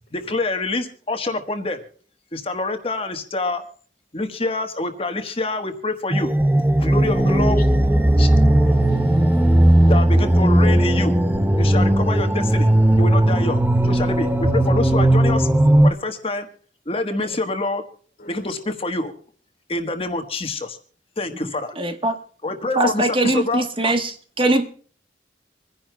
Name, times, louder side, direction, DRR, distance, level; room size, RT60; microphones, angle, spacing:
voice 1, 0.1-1.8 2.3-3.6 4.1-6.3 6.8-7.7 8.2-8.3 9.9-11.1 11.6-12.7 13.0-15.5 15.8-16.5 16.9-17.8 18.3-19.1 19.7-20.8 21.2-21.7 22.4-23.6, left 2 dB, 30° left, 6 dB, 1.3 m, -26 dB
sound 1, 6.1-15.9, right 1 dB, 10° right, 0.6 m, -16 dB
voice 2, 8.0-10.0 17.1-17.4 18.2-18.6, left 1 dB, 50° left, 7 dB, 2.1 m, -42 dB
voice 3, 21.7-22.2 22.8-24.7, right 2 dB, 30° right, 7 dB, 1.1 m, -21 dB
26.5 x 10.5 x 2.2 m, 0.43 s
head